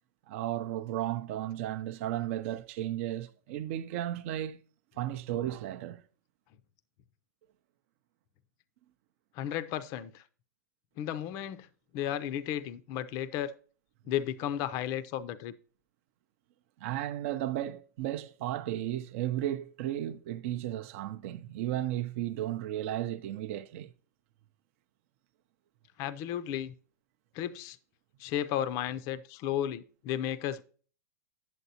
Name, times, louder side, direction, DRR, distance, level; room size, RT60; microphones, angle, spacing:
voice 1, 0.3-4.6 5.0-6.0 16.8-23.9, right 13 dB, 50° right, 0.5 m, -34 dB
voice 2, 9.4-10.2 11.0-11.7 11.9-13.5 14.1-15.5 26.0-26.7 27.3-27.8 28.2-30.6, left 11 dB, 35° left, 0.4 m, -34 dB
8.0 x 8.0 x 2.7 m
supercardioid pair, 150°, 9 cm